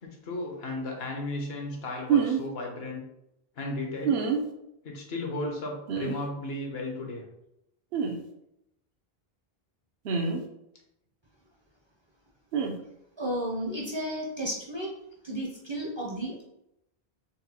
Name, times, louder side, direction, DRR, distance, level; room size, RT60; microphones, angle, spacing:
voice 1, 0.0-3.0 3.6-4.2 4.8-7.2, left 2 dB, 75° left, 1 dB, 1.0 m, -35 dB
sound 1, 2.1-2.4 4.0-4.4 5.9-6.1 7.9-8.1 10.0-10.4 12.5-12.7, right 6 dB, 70° right, 0.8 m, -26 dB
voice 2, 13.2-14.9 15.2-16.4, equal, 35° right, -3 dB, 0.5 m, -33 dB
4.0 x 2.2 x 2.8 m, 0.82 s
omnidirectional pair, 1.0 m